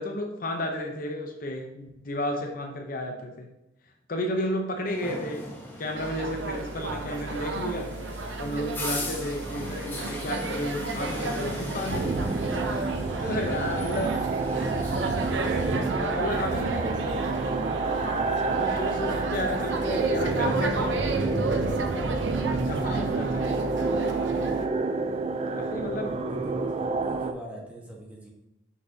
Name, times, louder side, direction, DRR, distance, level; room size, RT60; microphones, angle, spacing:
voice 1, 0.0-3.5 4.1-5.5 5.8-7.9 8.4-12.8 13.2-14.2 16.0-17.3 17.6-21.1 21.9-22.1 22.5-24.1 25.6-26.1, left 1 dB, 50° left, 3 dB, 0.7 m, -33 dB
sound 1, 4.9-15.7, left 1 dB, 10° left, 1.0 m, -39 dB
sound 2, 6.0-24.7, right 3 dB, 90° right, 0.7 m, -32 dB
sound 3, 11.9-27.3, right 3 dB, 35° right, 0.3 m, -29 dB
voice 2, 16.1-17.1 25.3-28.3, right 1 dB, 10° right, -2 dB, 1.2 m, -43 dB
6.2 x 5.6 x 2.7 m, 0.90 s
head